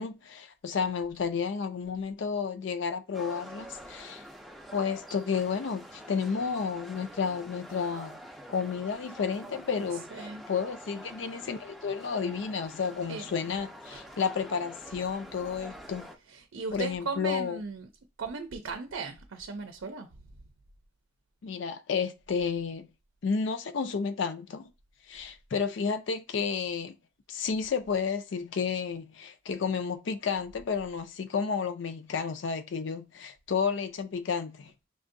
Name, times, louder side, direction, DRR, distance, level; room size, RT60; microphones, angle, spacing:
voice 1, 0.0-4.2 4.7-8.2 8.5-16.1 16.7-17.6 21.4-22.9 23.2-24.7 25.1-27.0 27.3-34.7, left 6 dB, 65° left, 0.4 m, -31 dB
sound 1, 3.1-16.2, equal, ahead, 0.4 m, -47 dB
voice 2, 9.9-10.4 13.1-13.3 13.9-14.0 16.1-17.9 18.2-20.1, right 4 dB, 90° right, 0.5 m, -37 dB
6.1 x 2.6 x 2.6 m
head